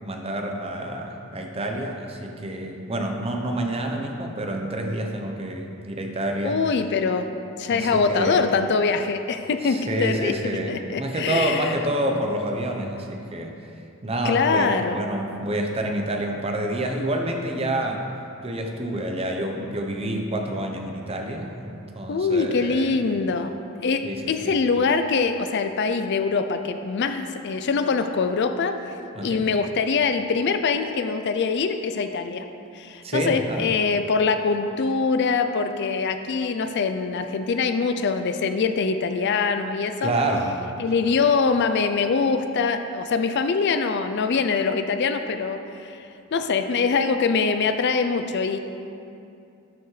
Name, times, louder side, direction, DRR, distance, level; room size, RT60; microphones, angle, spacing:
voice 1, 0.0-6.6 7.7-8.4 9.6-13.5 14.0-18.1 18.4-22.9 24.0-24.6 29.1-29.4 33.0-33.7 40.0-40.5 42.6-42.7 46.4-46.5, right 1 dB, 25° right, 3 dB, 0.7 m, -28 dB
voice 2, 6.4-7.3 7.6-11.7 14.2-15.0 22.1-23.5 23.8-28.7 29.2-32.5 32.7-40.1 40.8-46.0 46.3-48.6, left 4 dB, 50° left, 8 dB, 0.4 m, -23 dB
12.0 x 6.9 x 3.2 m, 2.6 s
head